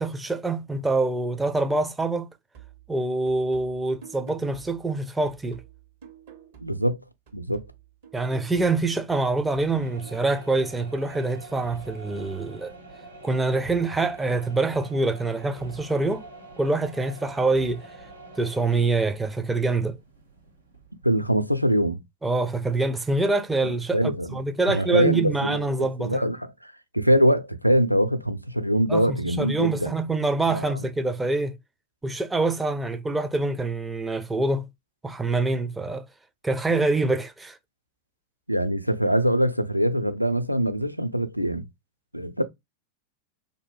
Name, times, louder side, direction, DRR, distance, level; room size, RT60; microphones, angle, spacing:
voice 1, 0.0-2.3 2.9-5.6 8.1-12.8 13.2-16.2 16.6-17.9 18.4-20.0 22.2-26.2 28.9-31.6 32.0-34.7 35.0-36.0 36.4-37.6, right 3 dB, 10° right, 0.4 m, -25 dB
sound 1, 2.5-7.0 7.3-10.5, right 9 dB, 55° right, 1.2 m, -50 dB
voice 2, 6.6-7.0 7.3-7.7 21.0-22.0 23.6-24.4 24.7-25.6 26.0-29.9 30.5-30.8 38.5-41.7 42.1-42.4, equal, 90° left, 0.4 m, -23 dB
sound 2, 9.6-21.4, right 2 dB, 85° right, 1.1 m, -46 dB
2.7 x 2.1 x 3.0 m
figure-of-eight pair, 90°, 0 cm